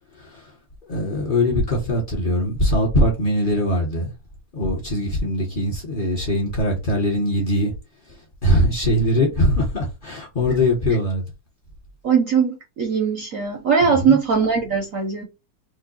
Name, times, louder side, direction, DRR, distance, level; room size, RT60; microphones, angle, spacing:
voice 1, 0.9-4.1 4.5-7.7 8.4-11.2 13.8-14.2, left 1 dB, 30° left, 1.4 m, -21 dB
voice 2, 12.0-15.2, right 6 dB, 55° right, 1.0 m, -20 dB
2.9 x 2.6 x 4.0 m
omnidirectional pair, 2.0 m